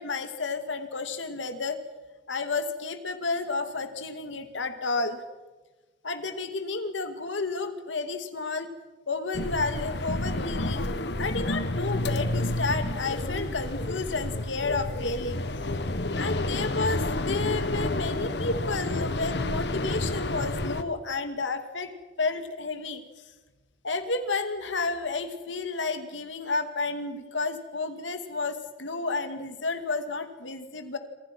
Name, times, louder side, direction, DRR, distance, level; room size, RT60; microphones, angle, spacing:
voice 1, 0.0-1.8 2.3-5.2 6.0-8.7 9.1-10.9 11.2-15.4 16.1-21.9 22.2-23.0 23.8-31.0, left 3 dB, 85° left, 8 dB, 2.3 m, -31 dB
sound 1, 9.3-20.8, left 1 dB, 60° left, 1.4 m, -30 dB
27.5 x 26.0 x 6.1 m, 1.2 s
head